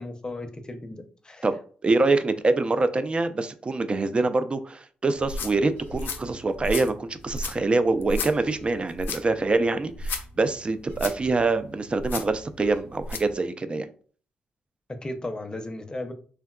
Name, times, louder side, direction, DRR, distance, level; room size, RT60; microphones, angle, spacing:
voice 1, 0.0-1.5 14.9-16.1, left 2 dB, 25° left, 0.6 m, -35 dB
voice 2, 1.8-13.9, right 3 dB, 30° right, 0.3 m, -25 dB
sound 1, 5.1-13.3, left 3 dB, 75° left, 0.4 m, -35 dB
sound 2, 5.8-6.5 8.2-8.8 10.9-11.5 12.6-12.8, right 2 dB, 85° right, 1.2 m, -44 dB
3.5 x 2.2 x 2.2 m
cardioid pair, 65°, 3 cm